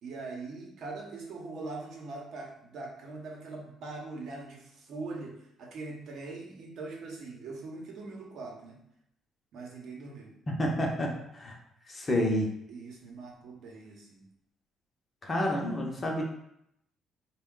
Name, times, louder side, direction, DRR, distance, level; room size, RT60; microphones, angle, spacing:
voice 1, 0.0-8.8 9.5-10.3 12.7-14.3, right 3 dB, 65° right, -1 dB, 0.8 m, -42 dB
voice 2, 10.5-11.5 11.9-12.5 15.2-16.2, left 1 dB, 25° left, -1 dB, 0.6 m, -29 dB
3.4 x 2.2 x 3.7 m, 0.77 s
cardioid pair, 135°, 0 cm